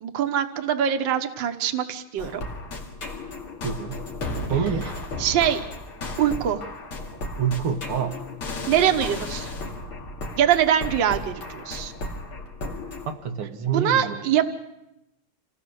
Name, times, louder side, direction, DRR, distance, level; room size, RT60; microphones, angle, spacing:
voice 1, 0.0-2.4 5.2-5.6 6.2-6.6 8.7-9.5 10.4-11.9 13.7-14.5, right 9 dB, 65° right, 7 dB, 1.8 m, -23 dB
sound 1, 2.2-13.1, left 2 dB, 85° left, 3.2 m, -34 dB
voice 2, 3.6-4.0 4.5-4.9 7.4-8.2 13.1-14.2, right 7 dB, 90° right, 4 dB, 2.2 m, -27 dB
27.5 x 18.0 x 6.4 m, 0.89 s
omnidirectional pair, 2.3 m